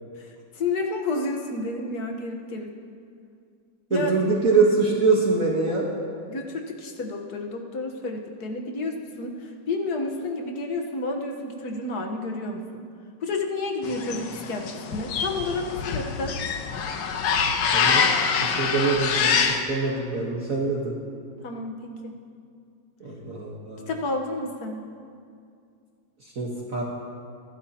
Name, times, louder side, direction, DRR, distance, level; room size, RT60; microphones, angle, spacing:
voice 1, 0.2-2.8 3.9-4.1 6.3-12.8 13.2-16.3 21.4-22.2 23.9-24.9, left 2 dB, 55° left, 2 dB, 1.5 m, -30 dB
voice 2, 3.9-5.9 17.7-18.1 18.4-21.0 23.0-23.9 26.2-26.8, right 3 dB, 45° right, -3 dB, 1.5 m, -24 dB
sound 1, 13.8-19.6, left 6 dB, 75° left, 1.6 m, -25 dB
24.0 x 11.5 x 2.9 m, 2.3 s
omnidirectional pair, 2.2 m